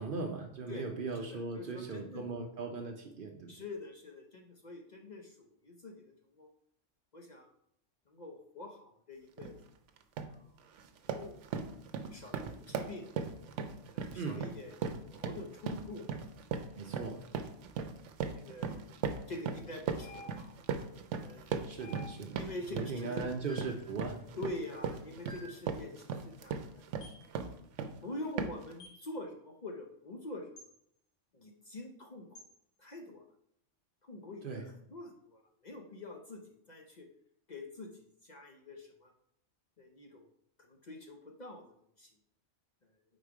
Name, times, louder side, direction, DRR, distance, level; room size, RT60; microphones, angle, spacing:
voice 1, 0.0-3.5 14.2-14.4 16.8-17.2 21.7-22.4 22.7-24.2 34.4-34.6, right 4 dB, 55° right, 3 dB, 0.7 m, -39 dB
voice 2, 1.2-2.3 3.5-6.5 7.1-7.5 8.1-9.6 10.3-10.6 11.1-11.4 12.1-13.1 13.9-16.1 16.8-17.0 18.4-18.8 19.3-20.5 21.2-21.7 22.4-23.2 24.4-26.8 28.0-30.5 31.3-32.4 32.8-33.2 34.0-37.1 37.5-39.1 39.8-40.2 40.6-41.6 42.0-42.1, left 2 dB, 45° left, 2 dB, 0.6 m, -46 dB
sound 1, 9.4-9.6 10.0-10.4 10.7-28.0 28.4-28.7, right 6 dB, 80° right, 0.9 m, -38 dB
sound 2, 20.0-20.7 21.8-22.5 23.5-23.9 25.3-25.7 27.0-27.3 28.8-29.1 30.6-30.7 32.3-32.5, left 1 dB, 65° left, 1.4 m, -51 dB
4.9 x 4.1 x 4.7 m, 0.73 s
omnidirectional pair, 1.3 m